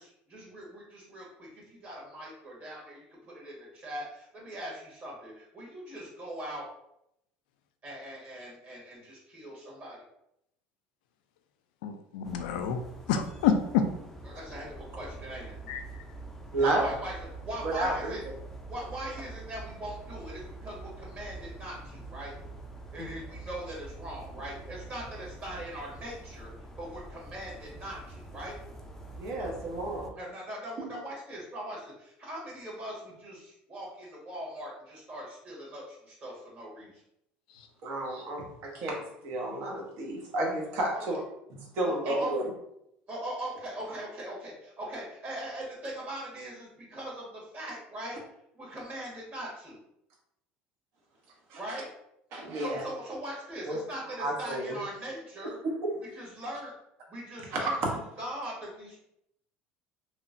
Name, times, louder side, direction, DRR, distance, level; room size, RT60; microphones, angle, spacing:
voice 1, 0.0-6.7 7.8-10.0 14.2-14.7 15.0-15.5 16.6-17.1 17.4-18.2 18.7-22.3 22.9-26.5 26.8-28.5 30.1-36.9 40.9-41.2 41.8-42.3 43.1-48.2 48.5-49.8 51.6-51.9 52.5-55.6 56.0-56.7 57.1-59.0, right 1 dB, 40° right, 1.4 m, -41 dB
voice 2, 11.8-12.8 13.1-13.9 15.7-15.8 23.0-23.1, left 7 dB, 90° left, 0.3 m, -28 dB
sound 1, 12.2-30.1, right 2 dB, 5° left, 0.4 m, -45 dB
voice 3, 16.5-16.9 17.6-18.2 29.2-30.1 30.8-30.9 37.8-41.2 41.6-42.4 51.5-51.6 52.3-52.8 53.6-53.8 54.2-54.8 55.6-55.9 57.5-57.9, right 2 dB, 65° right, 0.9 m, -31 dB
2.9 x 2.0 x 2.5 m
supercardioid pair, 95°, 5 cm